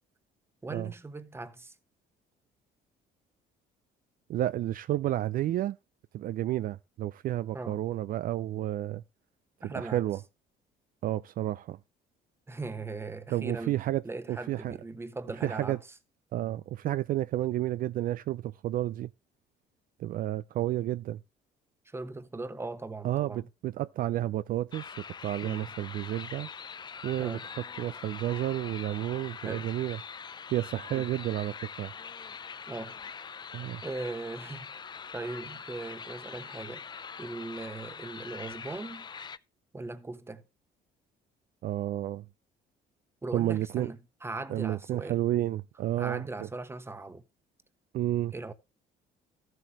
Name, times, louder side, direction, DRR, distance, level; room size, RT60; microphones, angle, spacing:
voice 1, 0.6-1.7 7.5-7.8 9.6-10.0 12.5-13.8 14.0-15.8 21.8-23.5 25.4-25.7 27.2-27.4 29.4-29.7 30.9-31.1 32.7-33.0 33.8-34.7 35.1-36.8 37.2-39.1 39.7-40.4 43.2-45.2 46.0-47.2 48.3-48.5, right 3 dB, 15° right, 1.1 m, -39 dB
voice 2, 4.3-5.8 6.1-9.0 9.8-10.2 11.0-11.8 13.3-14.0 14.3-14.8 15.4-15.8 16.3-19.1 20.0-21.2 23.0-25.0 25.2-26.5 27.0-27.4 27.8-30.0 30.5-31.9 33.5-33.8 41.6-42.2 43.3-43.9 44.5-46.3 47.9-48.3, right 13 dB, 55° right, 0.4 m, -31 dB
sound 1, 24.7-39.4, left 6 dB, 25° left, 0.5 m, -43 dB
13.5 x 7.8 x 3.0 m
cardioid pair, 110°, 17 cm